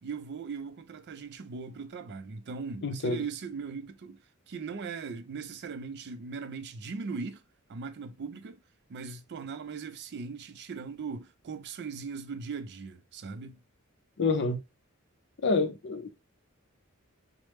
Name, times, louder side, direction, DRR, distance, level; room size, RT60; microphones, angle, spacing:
voice 1, 0.0-7.4 7.7-8.6 8.9-13.6, right 5 dB, 50° right, 0.4 m, -39 dB
voice 2, 2.8-3.2 14.2-14.6 15.4-16.1, left 3 dB, 55° left, 0.5 m, -28 dB
3.2 x 2.0 x 3.0 m
head